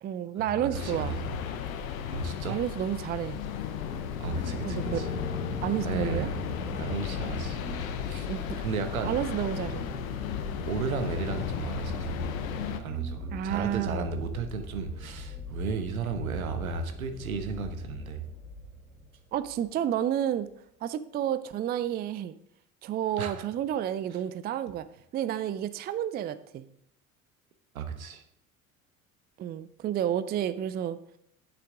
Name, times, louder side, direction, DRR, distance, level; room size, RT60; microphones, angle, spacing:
voice 1, 0.0-1.2 2.5-3.4 4.6-5.0 5.6-6.3 8.3-8.6 9.0-9.9 13.3-14.1 19.3-20.5 20.8-22.3 22.8-24.9 25.1-26.7 29.4-31.0, right 10 dB, 25° right, 14 dB, 0.4 m, -30 dB
voice 2, 0.6-1.2 2.1-2.6 4.2-5.1 5.8-6.3 6.8-7.6 8.1-8.3 8.6-9.2 10.6-12.3 12.8-18.2 23.2-23.4 27.7-28.2, right 5 dB, 75° right, 8 dB, 1.1 m, -34 dB
sound 1, 0.7-12.8, left 8 dB, 70° left, 0.9 m, -35 dB
sound 2, 4.2-19.7 20.5-20.6, left 1 dB, 90° left, 3.0 m, -42 dB
Piano, 4.8-10.1, left 1 dB, 20° left, 2.9 m, -44 dB
9.9 x 8.0 x 3.8 m, 0.71 s
figure-of-eight pair, 65°, 42 cm